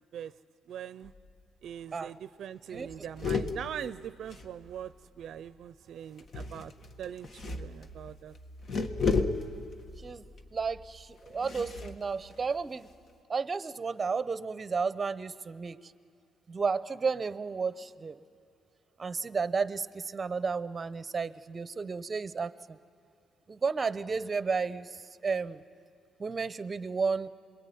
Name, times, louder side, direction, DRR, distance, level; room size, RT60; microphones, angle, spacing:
voice 1, 0.7-1.1 1.6-6.7 7.0-8.3, right 9 dB, 70° right, 14 dB, 0.5 m, -42 dB
sound 1, 1.0-1.5 1.8-1.9 2.2-2.4 2.7-5.1 6.2-13.1, left 4 dB, 50° left, 1.6 m, -35 dB
voice 2, 10.5-12.9 13.3-15.8 16.5-18.2 19.0-22.8 23.5-24.9 25.2-25.6 26.2-27.3, right 5 dB, 30° right, 14 dB, 0.8 m, -32 dB
26.0 x 21.5 x 9.3 m, 2.3 s
cardioid pair, 90°, 0 cm